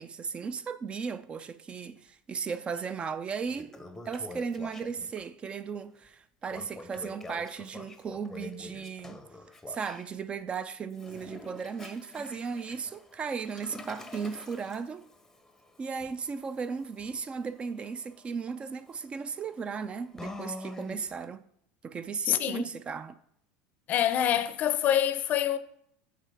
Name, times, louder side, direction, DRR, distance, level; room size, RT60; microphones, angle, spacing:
voice 1, 0.0-3.7 4.1-9.2 9.7-15.1 15.8-21.4 21.8-23.2, right 5 dB, 30° right, 0.4 m, -36 dB
Toilet flush, 2.8-2.9 3.3-5.2 6.5-10.1 10.9-21.2, left 2 dB, 10° left, 0.7 m, -46 dB
voice 2, 22.3-22.7 23.9-25.6, left 10 dB, 45° left, 0.5 m, -26 dB
9.5 x 3.8 x 3.5 m
supercardioid pair, 105°, 4 cm